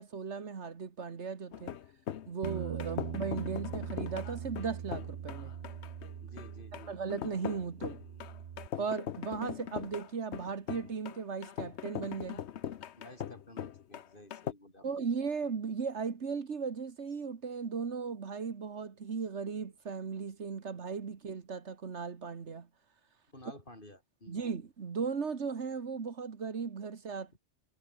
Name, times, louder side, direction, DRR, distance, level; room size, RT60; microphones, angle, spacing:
voice 1, 0.0-1.8 2.3-5.5 6.9-8.0 8.8-12.4 14.8-22.7 24.3-27.4, right 5 dB, 75° right, 1.8 m, -37 dB
sound 1, 1.5-14.5, left 9 dB, 70° left, 1.1 m, -41 dB
Bass guitar, 2.4-7.2 7.5-8.7, right 8 dB, 50° right, 0.8 m, -41 dB
voice 2, 6.2-7.0 13.0-14.9 23.3-24.4, left 1 dB, 45° left, 6.4 m, -53 dB
omnidirectional pair, 1.2 m